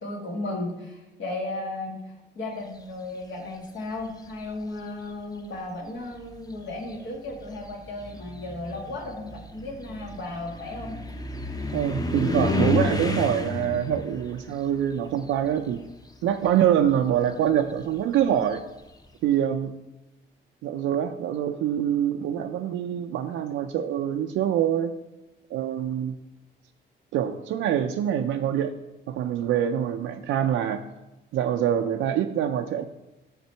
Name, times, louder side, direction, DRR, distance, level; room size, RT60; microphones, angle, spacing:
voice 1, 0.0-11.0, left 2 dB, 70° left, 0 dB, 1.9 m, -35 dB
sound 1, 3.9-4.4 5.4-5.5 6.1-16.0 16.3-18.9, left 2 dB, 20° left, 0.7 m, -32 dB
voice 2, 11.7-15.8 16.2-18.6 19.2-19.7 20.6-24.9 25.5-26.2 27.1-28.7 29.1-30.8 31.3-32.8, right 10 dB, 85° right, 5 dB, 0.4 m, -25 dB
6.0 x 5.6 x 4.4 m, 1.0 s
cardioid pair, 90°, 20 cm